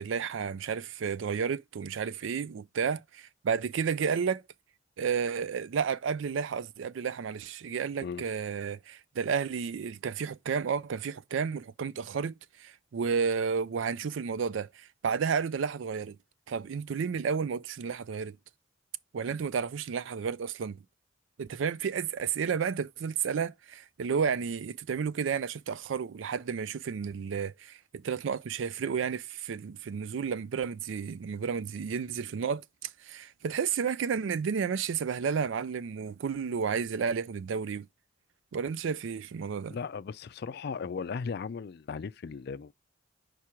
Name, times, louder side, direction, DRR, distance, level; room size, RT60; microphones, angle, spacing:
voice 1, 0.0-4.4 5.0-16.2 16.5-18.4 19.1-20.8 21.4-37.9 38.5-39.8, right 6 dB, 75° right, 0.4 m, -32 dB
voice 2, 39.6-42.7, left 5 dB, 55° left, 0.4 m, -37 dB
4.8 x 4.8 x 4.4 m
head